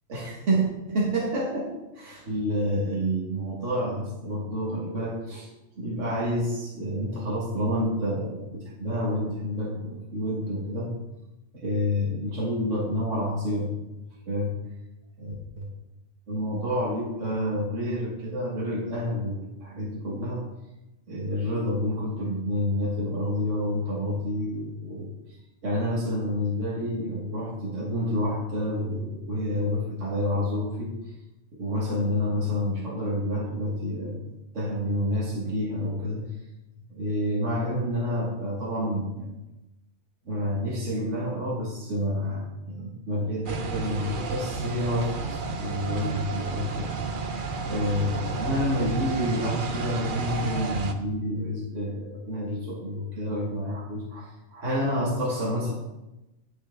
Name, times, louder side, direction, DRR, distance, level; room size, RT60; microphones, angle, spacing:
voice 1, 0.1-5.5 5.8-10.9 11.5-13.7 14.3-14.6 15.2-15.7 16.3-20.4 21.1-31.1 31.5-34.3 34.5-36.3 36.9-39.4 40.3-46.9 47.7-55.7, equal, 75° right, -4 dB, 2.0 m, -29 dB
sound 1, 43.5-50.9, right 4 dB, 45° right, 0.9 m, -32 dB
9.3 x 9.1 x 3.7 m, 0.96 s
omnidirectional pair, 1.3 m